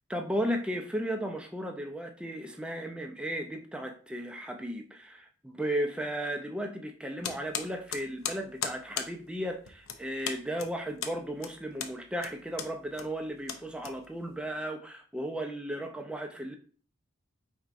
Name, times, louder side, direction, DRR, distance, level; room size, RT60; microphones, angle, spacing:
voice 1, 0.1-16.5, equal, 5° right, 0.4 m, -35 dB
sound 1, 7.2-14.4, left 7 dB, 80° left, 0.6 m, -38 dB
4.7 x 4.2 x 2.5 m
head